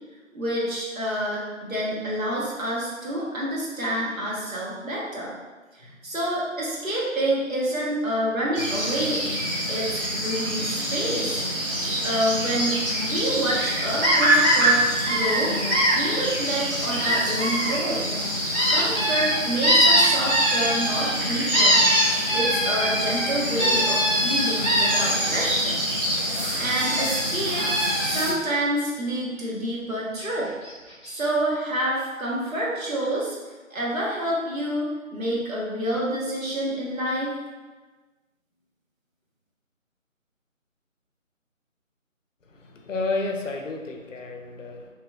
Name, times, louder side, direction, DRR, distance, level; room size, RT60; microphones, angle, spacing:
voice 1, 0.3-5.3 5.7-9.3 9.7-11.4 12.0-12.7 13.0-15.5 15.9-18.0 18.7-21.8 22.3-25.8 26.6-27.7 28.0-30.5 31.1-33.4 33.7-37.3, right 1 dB, 80° right, -5 dB, 1.1 m, -28 dB
sound 1, 8.6-28.3, equal, 45° right, 0.6 m, -28 dB
sound 2, 14.0-14.7 15.1-15.9 17.0-17.7 18.5-21.2 21.5-25.3 26.8-27.2 27.6-28.2 30.2-30.3 30.6-30.7 31.0-31.1, right 1 dB, ahead, 1.1 m, -22 dB
voice 2, 42.5-44.9, left 3 dB, 65° left, 2 dB, 0.5 m, -31 dB
2.9 x 2.4 x 2.2 m, 1.3 s
figure-of-eight pair, 160°, 40 cm